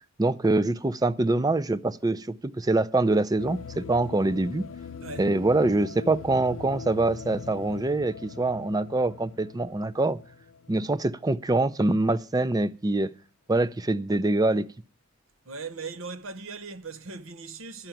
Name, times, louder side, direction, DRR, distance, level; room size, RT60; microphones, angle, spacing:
voice 1, 0.2-4.7 5.2-10.2 10.7-13.1 13.5-14.7, right 2 dB, 20° right, 0.5 m, -24 dB
sound 1, 3.4-11.6, left 6 dB, 85° left, 0.5 m, -42 dB
voice 2, 5.0-5.3 15.5-17.9, right 4 dB, 90° right, 0.9 m, -39 dB
11.5 x 5.9 x 9.0 m
head